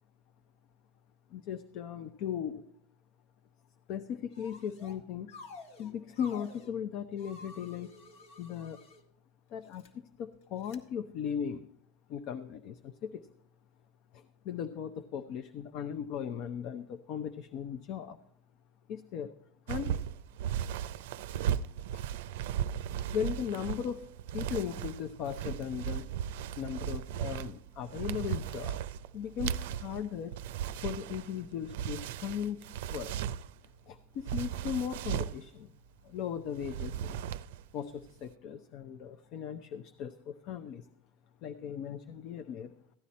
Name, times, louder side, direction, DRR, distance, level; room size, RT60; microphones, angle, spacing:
voice 1, 1.3-2.6 3.9-5.3 5.8-7.9 8.4-8.8 9.5-11.7 12.1-13.3 14.1-18.2 18.9-19.4 19.7-19.9 21.9-22.0 23.1-26.1 26.6-28.8 29.1-30.3 30.8-33.1 33.9-35.7 36.0-37.2 37.7-40.9 41.4-42.7, left 8 dB, 55° left, 10 dB, 0.6 m, -37 dB
sound 1, 4.3-5.0 5.3-6.7 7.2-9.0 9.6-9.9 10.6-10.8, left 3 dB, 70° left, 1.8 m, -50 dB
sound 2, 19.7-33.7 34.2-35.4 36.5-37.7 37.9-38.2, right 10 dB, 80° right, 0.5 m, -36 dB
15.0 x 10.0 x 4.2 m, 0.72 s
supercardioid pair, 130°, 0 cm